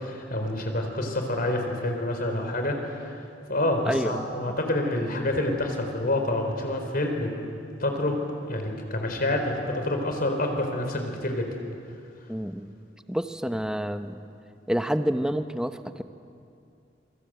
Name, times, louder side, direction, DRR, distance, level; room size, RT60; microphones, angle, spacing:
voice 1, 0.0-7.3 7.8-8.2 8.5-11.5, left 1 dB, 50° left, 4 dB, 4.3 m, -28 dB
voice 2, 3.8-4.3 12.3-12.7 13.1-14.2 14.7-16.0, equal, 5° right, 8 dB, 0.9 m, -28 dB
27.5 x 24.5 x 8.0 m, 2.5 s
head